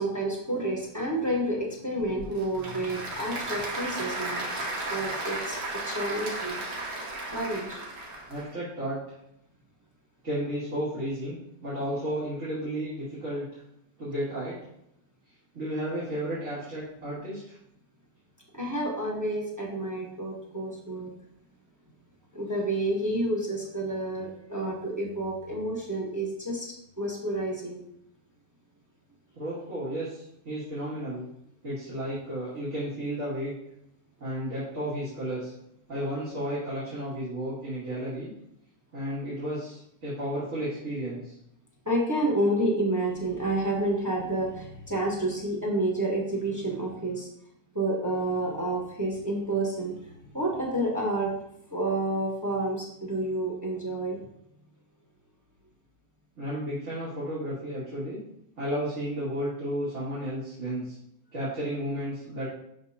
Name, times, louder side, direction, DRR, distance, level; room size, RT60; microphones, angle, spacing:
voice 1, 0.0-4.5 4.9-6.6 7.3-7.8 18.5-21.1 22.3-27.8 41.8-47.3 47.7-51.3 51.7-54.2, right 1 dB, 10° right, -1 dB, 1.1 m, -29 dB
Applause / Crowd, 2.0-8.5, right 2 dB, 85° right, 1.9 m, -34 dB
voice 2, 8.3-9.0 10.2-11.4 11.6-13.6 14.0-14.6 15.5-17.6 29.3-31.3 31.6-33.5 34.2-35.5 35.9-38.3 38.9-41.3 56.4-58.2 58.6-61.0 61.3-62.5, equal, 45° right, -10 dB, 2.7 m, -33 dB
11.0 x 3.8 x 2.9 m, 0.76 s
omnidirectional pair, 1.8 m